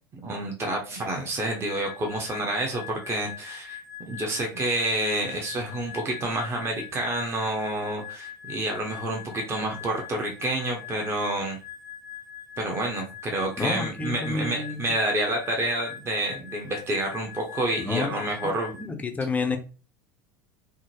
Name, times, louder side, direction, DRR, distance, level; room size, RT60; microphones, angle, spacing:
voice 1, 0.1-3.8 4.1-11.6 12.6-19.0, right 1 dB, 25° right, 0.7 m, -29 dB
sound 1, 1.5-18.8, left 10 dB, 80° left, 0.6 m, -42 dB
voice 2, 13.6-14.9 17.8-18.1 18.8-19.6, left 4 dB, 15° left, 0.5 m, -29 dB
3.5 x 2.0 x 2.9 m
figure-of-eight pair, 75°, 11 cm